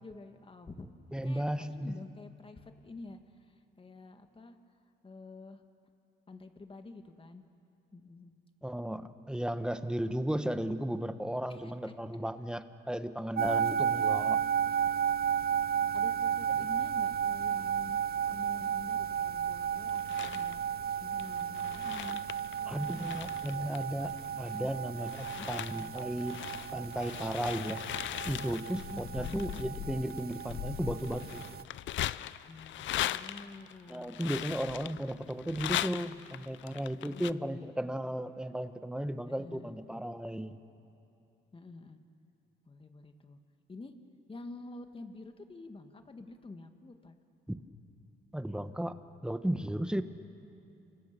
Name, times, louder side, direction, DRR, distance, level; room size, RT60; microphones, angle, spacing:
voice 1, 0.0-3.2 3.5-4.6 5.0-5.6 6.3-7.4 7.9-8.3 11.5-11.9 13.9-14.2 14.7-14.9 15.4-15.5 15.9-18.0 18.3-20.8 21.0-22.2 22.5-23.4 24.6-24.8 25.3-26.4 28.7-29.4 32.5-34.3 37.0-37.9 39.3-39.8 41.5-42.0 42.7-43.4 43.7-43.9 44.3-47.1, left 3 dB, 25° left, 7 dB, 2.0 m, -49 dB
voice 2, 1.1-2.0 8.6-14.4 22.7-26.3 26.7-27.8 28.2-31.4 33.9-40.6 47.5-47.6 48.3-48.9 49.2-50.0, right 1 dB, 5° right, 10 dB, 1.2 m, -35 dB
sound 1, 13.4-31.6, right 8 dB, 50° right, 0.7 m, -33 dB
sound 2, 19.9-20.6 21.2-24.6 25.0-37.3, left 13 dB, 70° left, 0.5 m, -39 dB
28.5 x 25.0 x 7.0 m, 2.8 s
cardioid pair, 90°, 20 cm